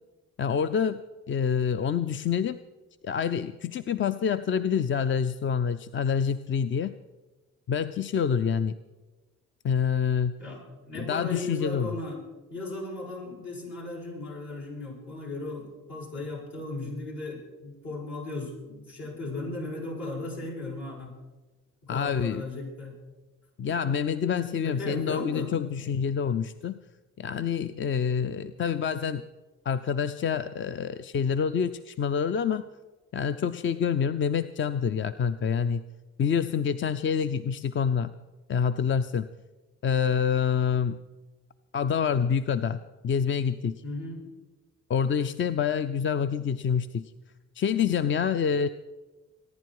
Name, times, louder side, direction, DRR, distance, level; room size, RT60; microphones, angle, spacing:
voice 1, 0.4-1.0 1.3-2.6 3.0-6.9 7.7-8.8 9.6-10.4 11.0-11.9 21.9-22.4 23.6-26.8 27.2-29.3 29.7-32.6 33.1-35.8 36.2-38.1 38.5-39.3 39.8-41.0 41.7-43.8 44.9-47.1 47.6-48.7, left 7 dB, 40° left, 13 dB, 0.5 m, -27 dB
voice 2, 10.4-12.2 12.5-21.1 21.8-23.0 24.6-25.9 43.8-44.3, left 2 dB, 65° left, -3 dB, 7.0 m, -36 dB
24.0 x 10.5 x 4.7 m, 1.2 s
cardioid pair, 90°, 30 cm